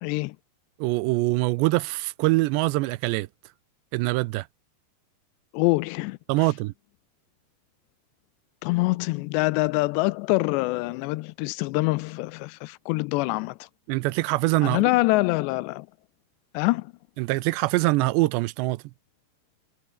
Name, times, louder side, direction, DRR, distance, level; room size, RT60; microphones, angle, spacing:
voice 1, 0.0-0.4 5.5-6.5 8.6-13.7 14.6-15.9 16.5-16.9, left 22 dB, 85° left, 2.6 m, -25 dB
voice 2, 0.8-3.3 3.9-4.5 6.3-6.7 13.9-14.9 17.2-18.8, right 21 dB, 80° right, 2.7 m, -24 dB
omnidirectional pair, 5.2 m